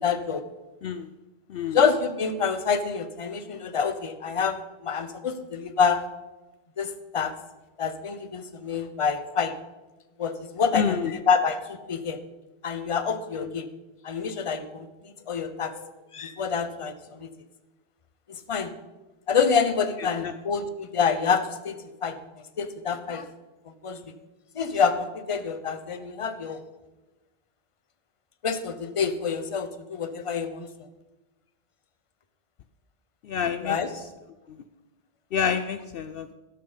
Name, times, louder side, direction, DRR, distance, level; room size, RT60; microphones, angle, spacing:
voice 1, 0.0-0.4 1.7-6.0 6.8-7.3 7.8-9.5 10.2-12.2 12.6-13.7 14.0-17.3 18.5-18.7 19.3-22.2 22.6-23.2 23.8-24.0 24.5-26.6 28.4-30.7 33.6-33.9, left 6 dB, 35° left, 10 dB, 0.8 m, -27 dB
voice 2, 1.5-1.8 10.7-11.1 13.4-13.5 20.0-20.3 33.2-33.8 34.5-34.6 35.3-36.3, left 7 dB, 65° left, 11 dB, 0.7 m, -28 dB
13.0 x 12.0 x 4.0 m, 1.1 s
omnidirectional pair, 1.1 m